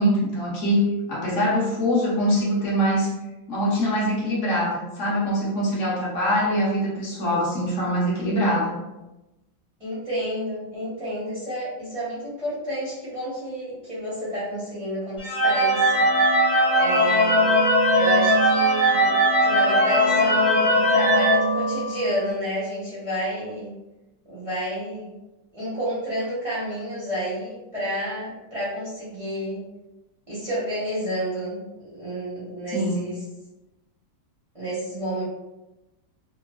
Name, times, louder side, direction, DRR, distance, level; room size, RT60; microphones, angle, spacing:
voice 1, 0.0-3.1 3.5-8.8 32.7-33.1, equal, 60° left, -5 dB, 0.8 m, -23 dB
voice 2, 9.8-17.5 17.9-19.1 19.4-23.7 24.2-25.1 25.5-29.6 30.3-33.2 34.5-35.2, equal, 35° right, -10 dB, 0.5 m, -30 dB
sound 1, 15.2-22.2, equal, 40° left, 0.3 m, -19 dB
3.0 x 2.1 x 2.3 m, 0.99 s
omnidirectional pair, 2.0 m